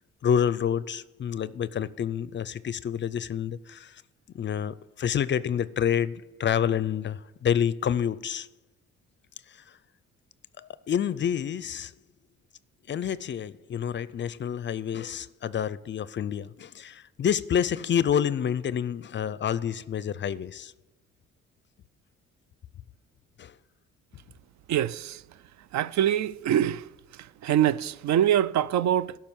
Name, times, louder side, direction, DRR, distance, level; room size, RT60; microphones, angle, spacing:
voice 1, 0.2-4.0 4.3-8.5 10.6-11.9 12.9-20.7 23.4-23.5, left 8 dB, 40° left, 0.4 m, -28 dB
voice 2, 24.7-25.2 25.7-26.8 27.4-29.2, right 11 dB, 65° right, 0.4 m, -24 dB
12.0 x 5.7 x 7.2 m
cardioid pair, 90°, 30 cm